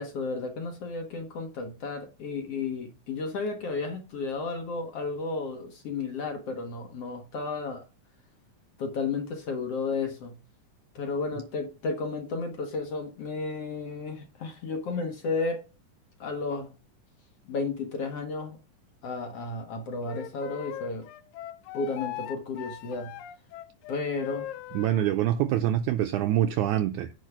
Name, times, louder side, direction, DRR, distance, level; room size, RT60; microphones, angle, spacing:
voice 1, 0.0-7.8 8.8-10.4 11.0-15.6 16.2-16.7 17.5-18.6 19.0-21.1 21.7-23.1 23.9-24.5, left 4 dB, 55° left, 1.9 m, -33 dB
Wind instrument woodwind instrument, 20.1-25.1, left 12 dB, 80° left, 2.4 m, -40 dB
voice 2, 24.7-27.1, right 12 dB, 85° right, 1.7 m, -25 dB
9.4 x 4.9 x 6.0 m
omnidirectional pair, 4.0 m